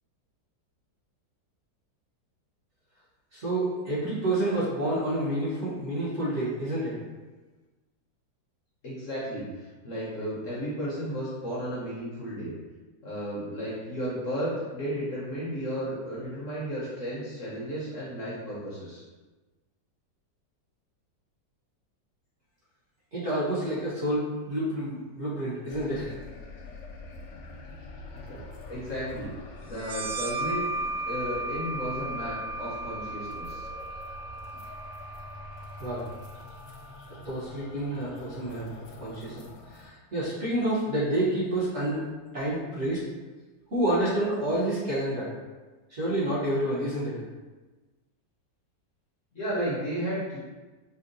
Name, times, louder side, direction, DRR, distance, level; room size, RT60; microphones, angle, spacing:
voice 1, 3.3-7.0 23.1-26.1 35.8-36.1 37.2-38.7 39.0-42.0 42.3-43.0 43.7-45.3 45.9-47.2, right 1 dB, 45° right, -9 dB, 1.1 m, -29 dB
voice 2, 8.8-12.5 13.0-19.0 28.1-28.4 28.7-29.3 29.6-30.7 31.1-33.7 49.3-50.4, equal, 55° left, -7 dB, 1.0 m, -33 dB
sound 1, 25.7-39.9, left 2 dB, 75° left, 1.2 m, -45 dB
sound 2, 29.7-37.1, right 1 dB, 90° right, 0.6 m, -36 dB
5.3 x 2.2 x 2.5 m, 1.2 s
omnidirectional pair, 1.9 m